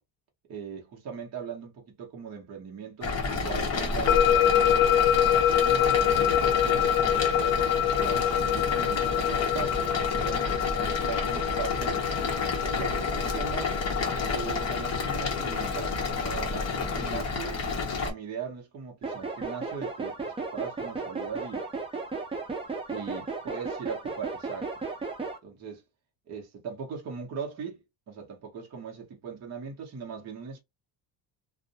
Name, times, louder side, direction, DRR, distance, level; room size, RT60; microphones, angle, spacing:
voice 1, 0.5-4.9 5.5-12.1 12.6-13.9 14.3-21.6 22.9-24.7 25.4-25.8 26.3-30.6, right 6 dB, 35° right, 0.7 m, -40 dB
sound 1, 3.0-18.1, left 4 dB, 35° left, 0.8 m, -30 dB
sound 2, 4.1-17.1, left 10 dB, 65° left, 0.5 m, -26 dB
sound 3, 19.0-25.4, right 4 dB, 15° right, 0.3 m, -35 dB
2.6 x 2.1 x 2.7 m
cardioid pair, 170°, 44 cm